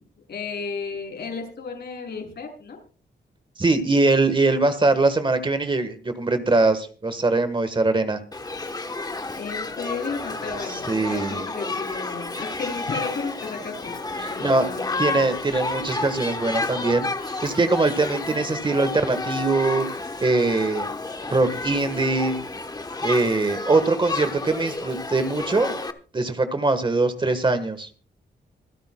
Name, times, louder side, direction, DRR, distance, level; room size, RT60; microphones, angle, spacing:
voice 1, 0.3-2.8 9.3-15.2, left 4 dB, 70° left, 2 dB, 6.2 m, -33 dB
voice 2, 3.6-8.2 10.7-11.5 14.2-14.7 15.0-19.9 20.2-20.9 21.3-22.4 23.0-25.7 26.1-27.9, right 3 dB, 25° right, 10 dB, 1.3 m, -22 dB
Shout / Human group actions, 8.3-25.9, left 3 dB, 20° left, 1.0 m, -31 dB
26.0 x 10.5 x 2.2 m, 0.38 s
wide cardioid pair, 115°, 18 cm